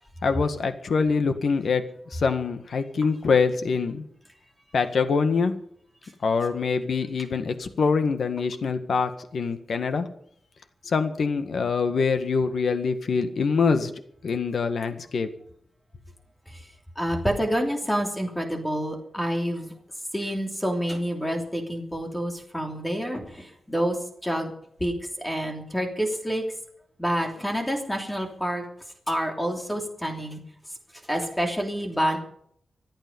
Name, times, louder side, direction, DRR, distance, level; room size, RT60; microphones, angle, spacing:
voice 1, 0.2-1.8 2.1-4.0 4.7-5.5 6.2-10.1 10.9-13.9 14.2-15.3, left 5 dB, 60° left, 8 dB, 1.8 m, -24 dB
voice 2, 17.0-19.7 20.1-24.0 24.2-24.5 24.8-26.4 27.0-28.6 29.1-30.4 31.1-32.2, equal, 5° left, 2 dB, 3.0 m, -28 dB
26.0 x 9.0 x 5.5 m, 0.66 s
wide cardioid pair, 180°, 0 cm